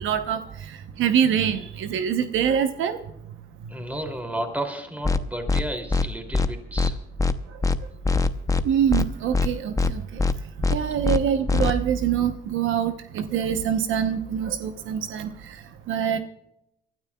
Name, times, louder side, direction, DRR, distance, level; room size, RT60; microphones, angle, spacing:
voice 1, 0.0-3.0 3.6-3.7 7.5-7.6 8.6-10.2 10.7-16.2, right 8 dB, 80° right, 8 dB, 0.9 m, -25 dB
voice 2, 3.7-7.0, right 1 dB, 5° right, 4 dB, 2.8 m, -32 dB
sound 1, 5.0-5.2 5.5-5.6 5.9-6.1 6.3-6.5 6.8-6.9 7.2-7.3 7.6-7.8 8.0-8.6 8.9-9.1 9.3-9.5 9.8-9.9 10.2-10.3 10.6-10.8 11.0-11.2 11.5-11.7, left 3 dB, 15° left, 0.7 m, -21 dB
29.0 x 13.0 x 2.3 m, 0.80 s
cardioid pair, 90°, 20 cm